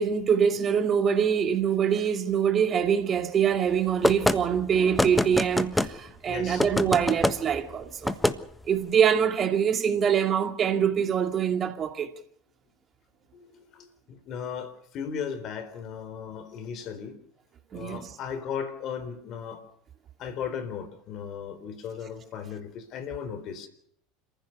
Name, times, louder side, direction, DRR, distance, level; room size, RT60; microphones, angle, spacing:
voice 1, 0.0-8.1 8.6-12.1 17.7-18.1, right 7 dB, 35° right, 2.4 m, -24 dB
sound 1, 4.0-4.4 5.0-5.9 6.6-7.4 8.0-8.4, left 1 dB, 5° left, 1.4 m, -24 dB
voice 2, 6.0-6.7 13.3-17.2 17.7-19.6 20.2-23.7, left 7 dB, 50° left, 4.0 m, -36 dB
27.5 x 15.5 x 6.6 m
hypercardioid pair, 80°, 0 cm